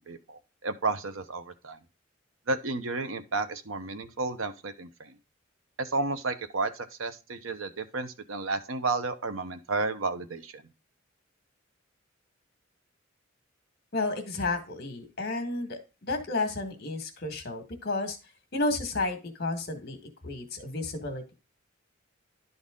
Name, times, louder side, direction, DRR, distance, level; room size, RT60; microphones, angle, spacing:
voice 1, 0.0-1.8 2.5-5.2 5.8-10.6, right 3 dB, 85° right, 9 dB, 0.9 m, -32 dB
voice 2, 13.9-18.2 18.5-20.0 20.2-21.3, left 2 dB, 50° left, 5 dB, 1.7 m, -32 dB
11.0 x 4.0 x 3.7 m, 0.30 s
head